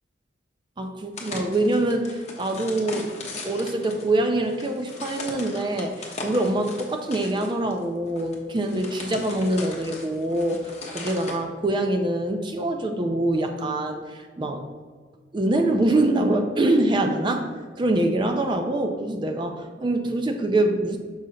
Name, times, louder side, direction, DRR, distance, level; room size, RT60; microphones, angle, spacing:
voice 1, 0.8-3.1 3.4-14.6 15.3-21.0, right 1 dB, 25° right, 5 dB, 0.3 m, -24 dB
sound 1, 1.1-11.4, left 2 dB, 35° left, 0.9 m, -38 dB
6.2 x 2.8 x 5.5 m, 1.6 s
head